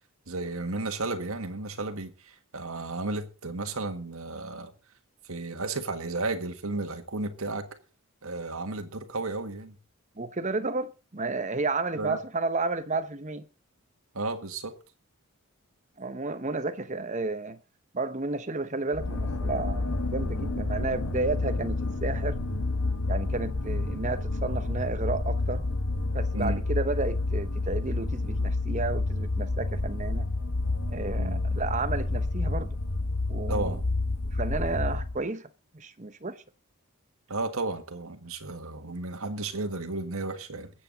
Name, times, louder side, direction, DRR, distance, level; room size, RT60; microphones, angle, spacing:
voice 1, 0.3-4.7 5.3-7.7 8.2-9.8 12.0-12.2 14.1-14.7 26.3-26.6 31.2-31.4 33.5-33.8 37.3-40.7, right 2 dB, 70° right, 1.7 m, -33 dB
voice 2, 10.2-13.5 16.0-17.6 17.9-22.4 23.1-25.6 26.1-30.3 30.9-32.8 33.3-33.8 34.3-35.5 35.7-36.4, right 3 dB, 35° right, 0.9 m, -32 dB
sound 1, 18.9-35.2, left 2 dB, 90° left, 1.3 m, -29 dB
21.5 x 8.2 x 4.0 m
head